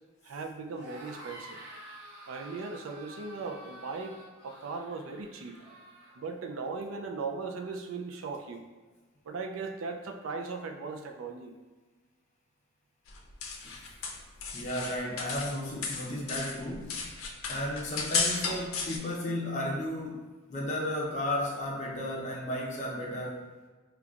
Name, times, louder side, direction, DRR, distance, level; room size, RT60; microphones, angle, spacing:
voice 1, 0.2-1.6 2.3-5.6 6.2-8.6 9.2-11.5, right 4 dB, 80° right, 4 dB, 0.4 m, -38 dB
sound 1, 0.7-6.1, right 1 dB, 60° right, 0.8 m, -49 dB
sound 2, 13.1-15.6 15.8-19.0, left 4 dB, 85° left, 0.5 m, -34 dB
voice 2, 14.5-17.1 17.5-20.2 20.5-23.4, left 1 dB, 35° left, -3 dB, 0.6 m, -34 dB
5.2 x 2.3 x 2.3 m, 1.3 s
head